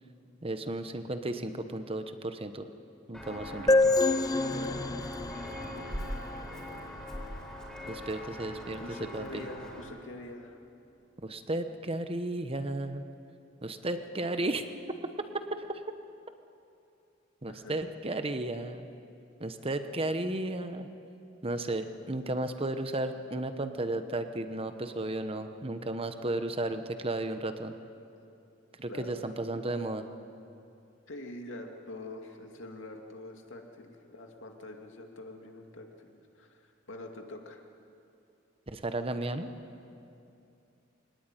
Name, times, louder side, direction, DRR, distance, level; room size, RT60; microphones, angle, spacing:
voice 1, 0.4-2.7 3.1-3.9 7.9-8.8 9.1-9.5 11.2-13.0 13.6-14.6 15.6-15.8 17.4-18.9 19.4-20.9 21.4-27.8 28.8-30.0 38.7-39.5, right 2 dB, 30° right, 9 dB, 1.0 m, -34 dB
Walk footsteps, 3.1-9.8, equal, 5° left, 3.9 m, -41 dB
sound 1, 3.7-7.2, left 3 dB, 20° left, 0.5 m, -28 dB
voice 2, 4.5-5.0 8.8-10.6 17.5-17.7 28.9-29.5 31.1-37.6, left 1 dB, 80° left, 3 dB, 2.5 m, -45 dB
23.0 x 19.0 x 9.2 m, 2.6 s
head